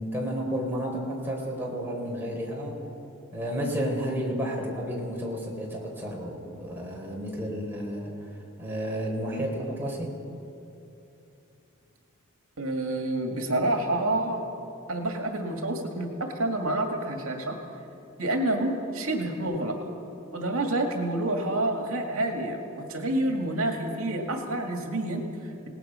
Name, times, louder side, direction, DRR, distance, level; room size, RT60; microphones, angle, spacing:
voice 1, 0.0-2.8 3.3-10.1, equal, 10° right, -3 dB, 3.9 m, -32 dB
voice 2, 12.6-14.5 14.9-17.6 18.2-19.9 20.3-25.7, right 1 dB, 80° right, 3 dB, 2.1 m, -28 dB
27.5 x 18.5 x 5.7 m, 2.7 s
head